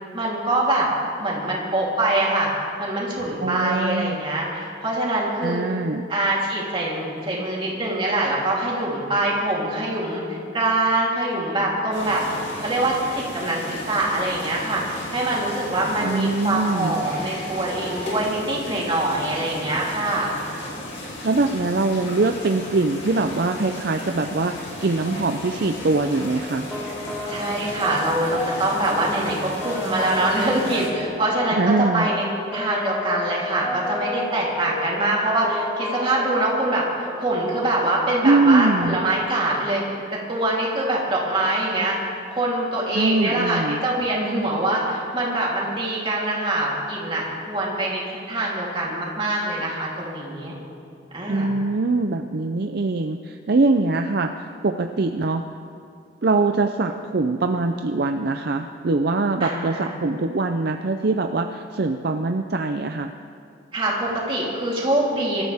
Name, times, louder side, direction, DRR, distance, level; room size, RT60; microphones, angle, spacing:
voice 1, 0.1-0.9 1.2-2.5 2.8-5.6 6.1-12.2 12.6-20.3 27.3-32.2 32.5-39.8 40.1-42.0 42.3-48.0 48.3-50.5 51.1-51.5 59.4-60.0 63.7-65.4, right 1 dB, 30° right, -5 dB, 3.4 m, -24 dB
voice 2, 3.4-4.2 5.4-6.1 16.0-17.0 21.2-26.7 31.5-32.1 38.2-39.0 42.9-43.8 51.3-55.4 56.2-63.1, right 3 dB, 55° right, 5 dB, 0.5 m, -22 dB
sound 1, 11.9-30.9, left 1 dB, 85° left, 4.7 m, -35 dB
sound 2, 26.2-37.8, left 2 dB, ahead, 2.6 m, -33 dB
25.5 x 14.0 x 3.6 m, 2.4 s
head